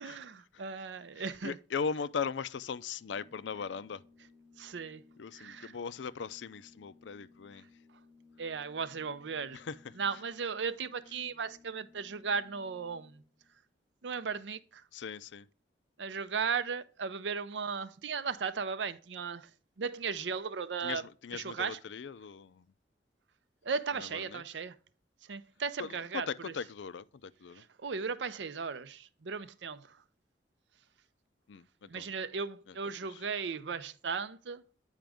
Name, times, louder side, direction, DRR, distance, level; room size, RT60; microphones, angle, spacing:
voice 1, 0.0-1.6 4.6-5.0 5.4-5.7 8.4-9.6 10.0-13.2 14.0-14.8 16.0-19.5 19.8-21.0 21.3-21.8 23.6-24.7 25.3-26.5 27.6-30.0 31.9-34.6, right 5 dB, 85° right, 0.6 m, -36 dB
voice 2, 1.2-4.0 5.2-7.6 9.5-9.9 14.9-15.5 20.8-22.7 24.0-24.4 25.8-27.6 31.5-32.1 32.7-32.8 33.1-33.2, left 6 dB, 85° left, 0.4 m, -39 dB
Organ, 2.8-13.5, left 4 dB, 10° left, 2.6 m, -61 dB
9.0 x 5.1 x 3.4 m
head